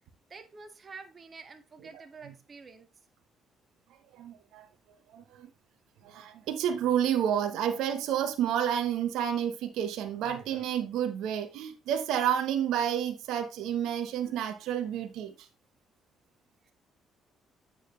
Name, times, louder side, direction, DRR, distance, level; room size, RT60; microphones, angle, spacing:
voice 1, 0.3-2.9 16.6-16.7, right 4 dB, 40° right, 2.0 m, -48 dB
voice 2, 4.1-4.7 5.1-5.5 6.0-15.5, right 9 dB, 85° right, 1.2 m, -30 dB
9.0 x 7.4 x 3.2 m
supercardioid pair, 75°, 0 cm